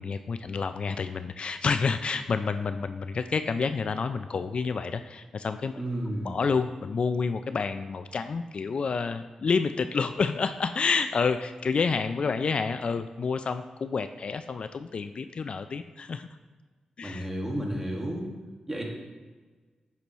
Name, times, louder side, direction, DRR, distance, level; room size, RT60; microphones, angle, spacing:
voice 1, 0.0-5.7 6.2-16.3 17.0-17.3, left 5 dB, 60° left, 10 dB, 0.3 m, -29 dB
voice 2, 5.8-6.3 17.0-18.3 18.7-18.9, right 1 dB, 15° right, -1 dB, 1.7 m, -32 dB
8.4 x 6.0 x 3.0 m, 1.3 s
cardioid pair, 65°, 2 cm